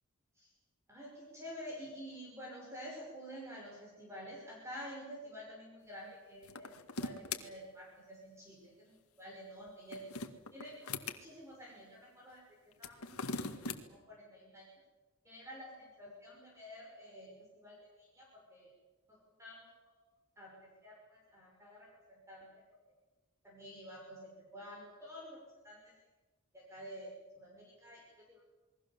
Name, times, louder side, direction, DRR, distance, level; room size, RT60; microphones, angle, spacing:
voice 1, 0.9-10.0 10.5-10.8 11.2-12.4 12.8-13.1 13.9-14.7 15.2-18.7 19.1-19.6 19.9-20.0 20.4-22.5 23.4-25.9 26.5-28.4, equal, 15° right, -3 dB, 5.9 m, -50 dB
sound 1, 6.4-7.4 9.7-11.2 12.7-13.8, left 4 dB, 80° left, 2.0 m, -40 dB
28.0 x 22.0 x 7.4 m, 1.2 s
head